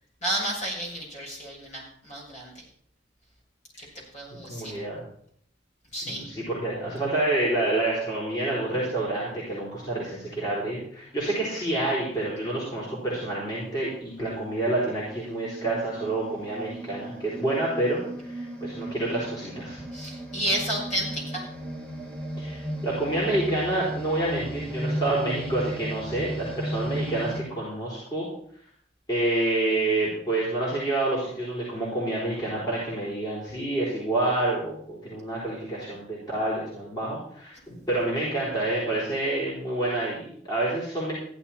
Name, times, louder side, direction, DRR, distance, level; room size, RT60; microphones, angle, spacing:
voice 1, 0.2-2.6 3.8-3.9 4.1-4.7 5.9-6.3 19.9-21.4, right 1 dB, 40° left, -3 dB, 6.1 m, -31 dB
voice 2, 4.3-5.0 6.0-19.8 22.4-28.3 29.1-41.1, right 2 dB, 20° left, -7 dB, 4.3 m, -28 dB
sound 1, 12.8-13.0 13.7-27.4, equal, 5° left, 2.0 m, -35 dB
15.0 x 11.5 x 4.4 m, 0.63 s
head